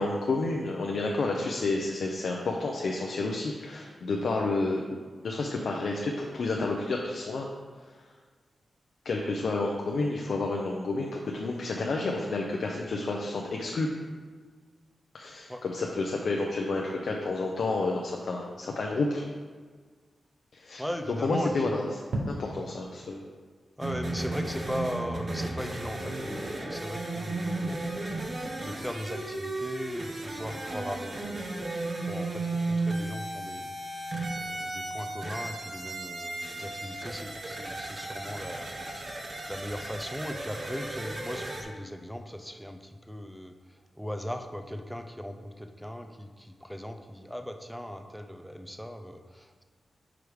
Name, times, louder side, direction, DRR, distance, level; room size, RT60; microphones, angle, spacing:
voice 1, 0.0-7.5 9.0-13.9 15.1-19.2 20.5-20.8 21.2-21.8 22.3-23.2, left 3 dB, 65° left, 0 dB, 0.5 m, -30 dB
voice 2, 20.8-21.7 23.8-31.5 31.8-38.8 39.5-49.6, equal, ahead, 6 dB, 0.4 m, -38 dB
sound 1, 21.0-22.9 23.3-23.4 23.7-23.8 24.1-24.3 24.6-33.2, right 1 dB, 80° right, 0.8 m, -45 dB
sound 2, 23.8-41.6, right 2 dB, 35° right, 0.8 m, -35 dB
4.9 x 4.7 x 4.8 m, 1.5 s
wide cardioid pair, 145°, 0 cm